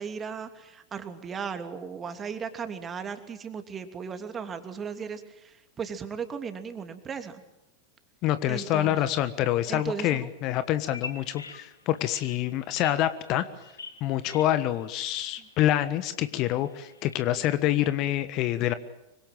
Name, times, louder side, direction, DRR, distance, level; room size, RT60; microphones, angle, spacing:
voice 1, 0.0-7.4 8.5-9.0 9.7-10.3 15.4-15.5, right 6 dB, 20° right, 8 dB, 2.9 m, -36 dB
voice 2, 8.2-13.5 14.0-18.7, left 13 dB, 40° left, 13 dB, 1.4 m, -26 dB
Bird vocalization bird call bird song, 10.8-17.2, left 4 dB, 75° left, 2.6 m, -46 dB
25.5 x 24.5 x 7.7 m, 0.88 s
figure-of-eight pair, 90°, 0 cm